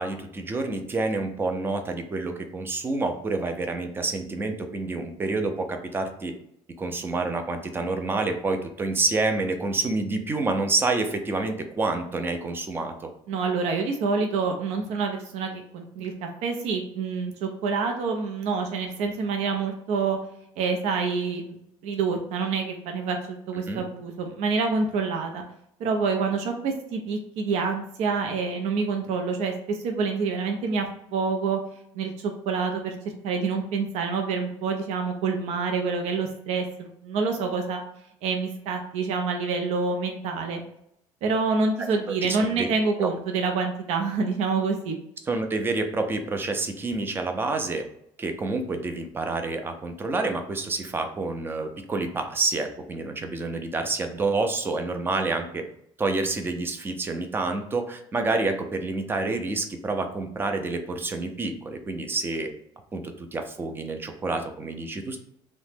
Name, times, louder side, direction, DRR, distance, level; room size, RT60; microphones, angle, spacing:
voice 1, 0.0-6.3 6.8-13.1 23.7-23.8 42.1-42.7 43.0-43.1 45.3-47.8 48.2-55.6 56.0-62.5 62.9-65.2, right 3 dB, 20° right, 6 dB, 0.4 m, -28 dB
voice 2, 13.3-16.1 16.4-20.2 20.6-21.5 21.8-25.4 25.8-30.9 31.1-31.6 31.9-32.9 33.2-37.8 38.2-40.6 41.2-44.9, right 4 dB, 75° right, 3 dB, 0.5 m, -27 dB
2.8 x 2.1 x 3.2 m, 0.74 s
cardioid pair, 135°, 11 cm